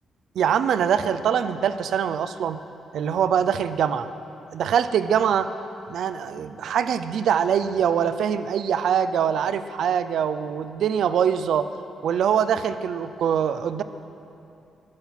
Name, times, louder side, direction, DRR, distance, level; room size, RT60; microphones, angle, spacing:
voice 1, 0.4-2.6 2.9-4.1 4.5-5.5 5.9-11.7 12.0-13.8, right 8 dB, 75° right, 12 dB, 0.5 m, -23 dB
14.0 x 10.5 x 5.7 m, 2.7 s
cardioid pair, 90°, 0 cm